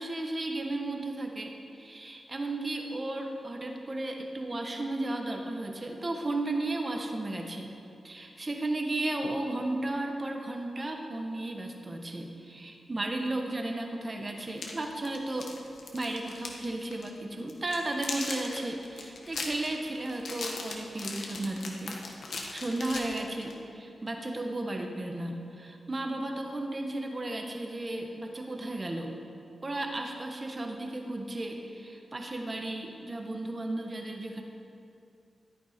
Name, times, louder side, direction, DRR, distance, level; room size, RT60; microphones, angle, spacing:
voice 1, 0.0-7.7 8.0-15.5 15.9-22.0 22.3-29.1 29.6-34.4, right 2 dB, 25° right, 3 dB, 1.2 m, -34 dB
sound 1, 14.4-16.7 16.9-17.1 17.5-23.6, left 3 dB, 70° left, 1.5 m, -38 dB
13.5 x 11.5 x 5.1 m, 2.6 s
wide cardioid pair, 175°, 0 cm